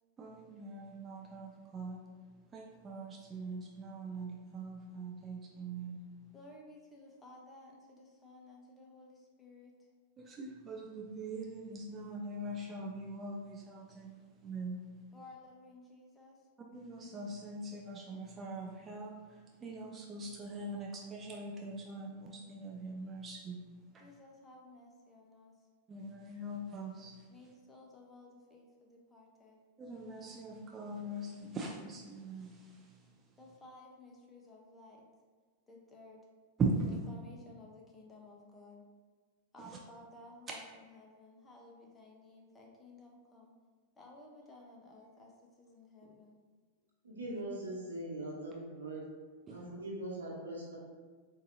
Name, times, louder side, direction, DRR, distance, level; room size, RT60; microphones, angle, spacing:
voice 1, 0.2-2.0 2.5-6.0 10.2-14.8 16.7-23.6 23.9-24.0 25.9-27.3 29.8-33.1 36.6-36.7 39.6-39.8 49.5-49.6, right 3 dB, 25° right, -1 dB, 0.4 m, -41 dB
voice 2, 6.3-9.9 15.1-16.5 24.0-25.6 27.3-29.6 33.4-35.0 35.7-36.3 36.8-38.8 39.5-43.5 43.9-46.4, left 2 dB, 15° left, -1 dB, 0.7 m, -56 dB
voice 3, 47.0-49.0 49.5-50.8, right 1 dB, 90° right, -4 dB, 1.0 m, -41 dB
4.0 x 2.5 x 2.6 m, 1.5 s
hypercardioid pair, 105°, 0 cm